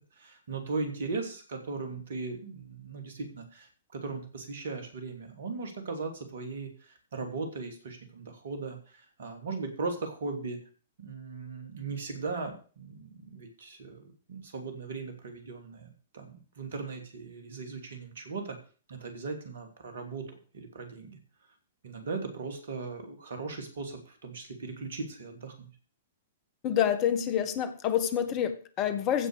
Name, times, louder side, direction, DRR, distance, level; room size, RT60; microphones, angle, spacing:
voice 1, 0.2-10.6 11.0-15.9 16.1-18.6 18.9-21.2 21.8-25.7, right 4 dB, 60° right, 6 dB, 3.4 m, -38 dB
voice 2, 26.6-29.3, left 9 dB, 35° left, 12 dB, 1.4 m, -27 dB
15.5 x 5.6 x 6.8 m, 0.39 s
figure-of-eight pair, 110°, 0 cm